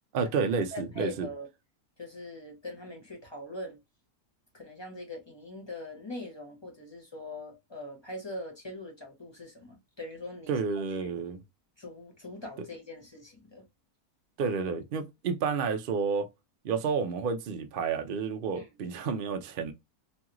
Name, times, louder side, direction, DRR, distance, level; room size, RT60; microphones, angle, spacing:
voice 1, 0.1-1.3 10.5-11.4 14.4-16.3 16.6-19.7, right 5 dB, 70° right, 0.5 m, -30 dB
voice 2, 0.7-1.5 2.0-3.8 4.5-10.6 11.0-11.1 11.8-13.6 18.5-18.7, left 1 dB, 20° left, 0.8 m, -42 dB
3.1 x 2.4 x 2.9 m
omnidirectional pair, 1.6 m